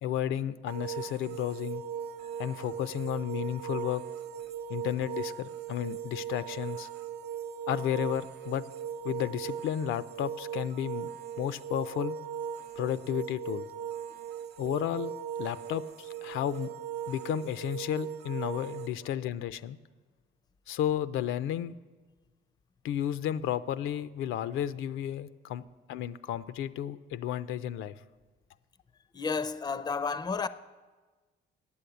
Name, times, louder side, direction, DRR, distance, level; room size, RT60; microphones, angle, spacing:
voice 1, 0.0-1.8 2.4-4.0 4.7-6.9 7.7-8.7 9.0-11.1 11.4-12.2 12.8-13.7 14.6-15.1 15.4-16.7 17.1-19.8 20.7-21.7 22.8-25.6 25.9-27.9, left 10 dB, 85° left, 0.5 m, -32 dB
sound 1, 0.7-18.9, right 8 dB, 55° right, 0.6 m, -39 dB
voice 2, 29.1-30.5, left 5 dB, 20° left, 0.4 m, -32 dB
8.6 x 8.4 x 7.9 m
cardioid pair, 90°, 20 cm